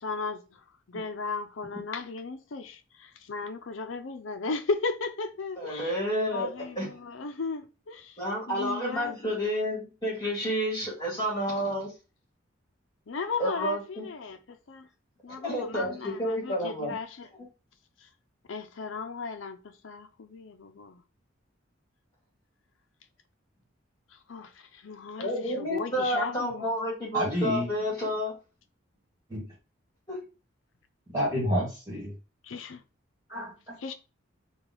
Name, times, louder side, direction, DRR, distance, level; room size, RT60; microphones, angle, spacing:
voice 1, 0.0-6.0 6.3-8.2 8.5-9.1 13.1-14.9 15.2-17.3 18.0-18.1 18.5-21.0 24.1-26.7 32.4-32.8 33.8-33.9, left 4 dB, 75° left, 0.5 m, -36 dB
voice 2, 5.6-6.5 6.8-6.9 8.2-11.9 13.4-14.0 15.4-16.9 25.2-28.3 30.1-30.2, equal, 20° left, 2.2 m, -30 dB
voice 3, 27.1-27.7 29.3-29.4 31.1-32.1 33.3-33.7, equal, 20° right, 1.7 m, -29 dB
4.9 x 2.3 x 3.7 m
head